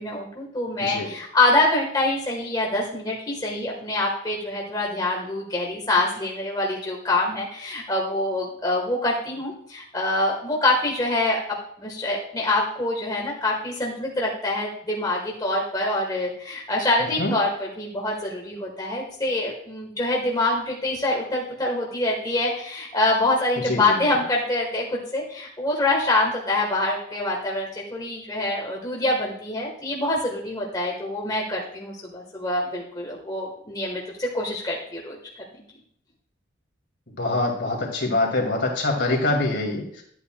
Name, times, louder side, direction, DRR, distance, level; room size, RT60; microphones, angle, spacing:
voice 1, 0.0-35.2 35.5-35.6, left 2 dB, 20° left, -2 dB, 1.2 m, -25 dB
voice 2, 0.8-1.1 17.2-17.3 23.7-24.1 37.2-40.0, left 2 dB, 60° left, 1 dB, 2.1 m, -24 dB
11.5 x 8.3 x 2.2 m, 0.66 s
head